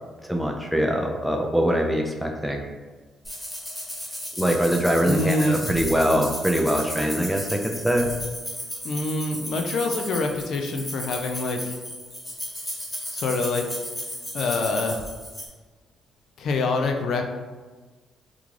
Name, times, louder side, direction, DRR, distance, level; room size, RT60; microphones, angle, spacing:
voice 1, 0.2-2.6 4.4-8.1, equal, ahead, 1 dB, 0.4 m, -23 dB
sound 1, 3.2-15.5, equal, 15° left, 1.1 m, -34 dB
voice 2, 5.0-5.7 8.8-11.8 13.1-13.7 14.3-15.1 16.4-17.3, left 2 dB, 65° left, 4 dB, 0.4 m, -25 dB
3.7 x 2.3 x 3.1 m, 1.4 s
cardioid pair, 90°, 0 cm